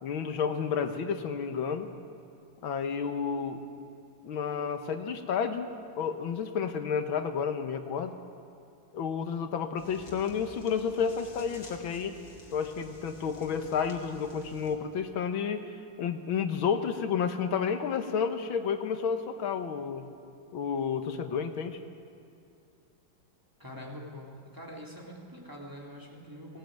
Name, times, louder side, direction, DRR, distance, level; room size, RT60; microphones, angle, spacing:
voice 1, 0.0-1.9 2.6-3.6 4.2-8.1 8.9-12.2 12.5-15.6 16.0-20.0 20.5-21.8, left 6 dB, 75° left, 7 dB, 1.9 m, -31 dB
sound 1, 9.8-14.8, left 2 dB, 60° left, 3.2 m, -51 dB
voice 2, 23.6-26.6, equal, 10° right, -2 dB, 2.9 m, -44 dB
18.5 x 18.0 x 9.2 m, 2.5 s
omnidirectional pair, 2.2 m